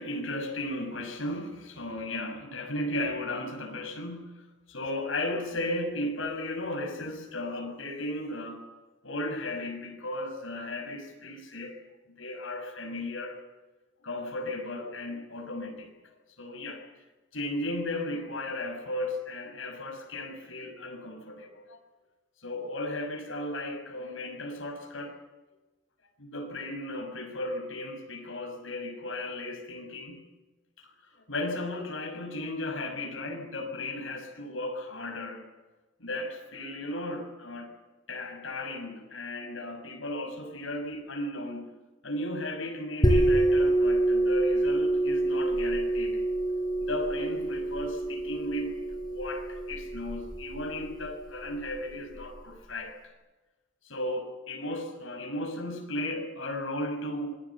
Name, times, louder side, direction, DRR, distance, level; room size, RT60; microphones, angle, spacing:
voice 1, 0.0-4.4 4.7-8.6 9.0-11.8 12.2-13.4 14.0-15.9 16.4-16.8 17.3-21.8 22.4-25.2 26.2-30.2 30.8-35.4 36.0-37.7 38.1-41.7 42.0-46.2 46.8-48.7 49.1-53.0 53.8-57.3, left 1 dB, 85° left, 3 dB, 6.6 m, -35 dB
sound 1, 43.0-52.4, right 1 dB, 20° left, 5.6 m, -27 dB
27.5 x 22.5 x 7.3 m, 1.2 s
head